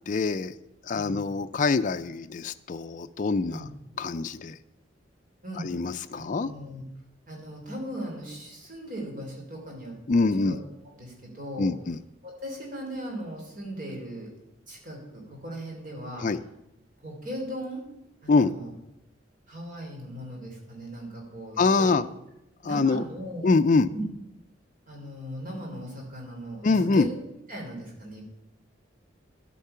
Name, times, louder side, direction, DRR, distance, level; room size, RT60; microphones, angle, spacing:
voice 1, 0.1-0.5 0.9-3.7 4.0-4.6 5.6-6.5 10.1-10.6 11.6-12.0 16.2-16.4 18.3-18.5 21.6-22.0 22.6-23.0 23.4-23.9 26.6-27.1, left 3 dB, 40° left, 9 dB, 0.4 m, -24 dB
voice 2, 5.9-6.8 7.3-9.9 10.4-10.6 10.9-11.7 12.2-14.3 14.7-16.3 17.0-17.8 18.2-18.7 19.5-22.0 22.6-23.5 23.9-24.0 24.9-27.1 27.5-28.2, equal, 45° right, 0 dB, 3.4 m, -38 dB
11.5 x 8.4 x 5.6 m, 0.86 s
head